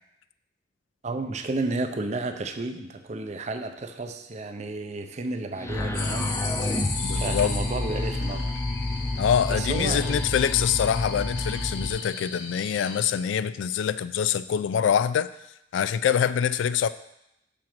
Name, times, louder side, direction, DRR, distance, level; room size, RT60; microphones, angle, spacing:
voice 1, 1.0-6.3 7.1-8.5 9.5-10.6, right 2 dB, 40° right, 7 dB, 0.5 m, -32 dB
sound 1, 5.6-11.9, left 2 dB, 15° left, 0.5 m, -29 dB
sound 2, 5.9-13.0, left 4 dB, 70° left, 0.8 m, -36 dB
voice 2, 7.0-7.5 9.2-15.3 15.7-16.9, left 8 dB, 85° left, 14 dB, 0.3 m, -25 dB
6.0 x 3.8 x 6.0 m, 0.83 s
head